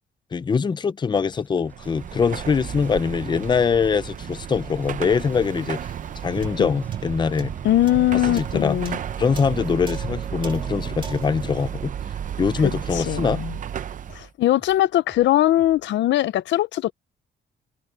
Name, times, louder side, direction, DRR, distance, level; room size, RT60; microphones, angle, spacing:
voice 1, 0.3-5.8 6.2-7.5 8.3-8.8 9.2-11.9 12.4-13.4, left 6 dB, 25° left, 0.6 m, -23 dB
sound 1, 1.1-15.9, left 1 dB, 10° left, 7.2 m, -54 dB
Car passing by / Traffic noise roadway noise / Engine, 1.7-14.3, right 9 dB, 45° right, 0.6 m, -33 dB
sound 2, 6.4-13.0, right 5 dB, 25° right, 2.5 m, -43 dB
voice 2, 7.6-9.0 12.9-13.5 14.1-16.9, left 14 dB, 90° left, 0.7 m, -21 dB
cardioid pair, 155°, 18 cm